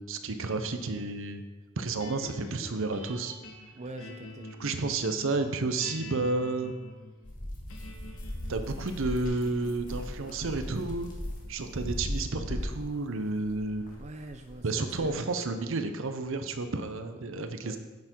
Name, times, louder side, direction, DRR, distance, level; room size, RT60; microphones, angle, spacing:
voice 1, 0.0-1.4 1.8-3.3 4.6-6.7 8.5-11.1 11.5-14.0 14.6-17.8, right 3 dB, 65° right, 8 dB, 0.7 m, -31 dB
sound 1, 2.0-14.3, left 1 dB, 90° left, 1.3 m, -48 dB
voice 2, 3.7-4.5 14.0-15.2 17.6-17.8, right 2 dB, 35° right, 5 dB, 0.6 m, -43 dB
sound 2, 7.2-15.1, equal, 40° left, 1.7 m, -38 dB
9.4 x 6.9 x 4.6 m, 1.2 s
head